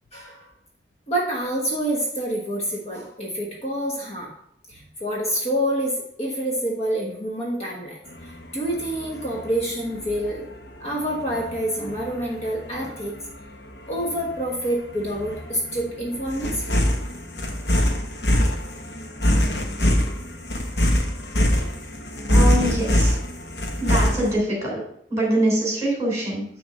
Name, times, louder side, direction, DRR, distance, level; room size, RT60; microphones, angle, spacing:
voice 1, 0.1-0.4 1.1-4.3 4.7-8.0 8.2-10.4 10.8-13.1 13.9-16.8, right 1 dB, 35° left, -2 dB, 1.2 m, -27 dB
sound 1, 8.1-24.3, equal, 70° left, 1.0 m, -24 dB
voice 2, 22.3-23.2 23.8-24.8 25.1-26.4, right 1 dB, 15° right, -3 dB, 3.1 m, -24 dB
9.5 x 3.5 x 5.2 m, 0.72 s
head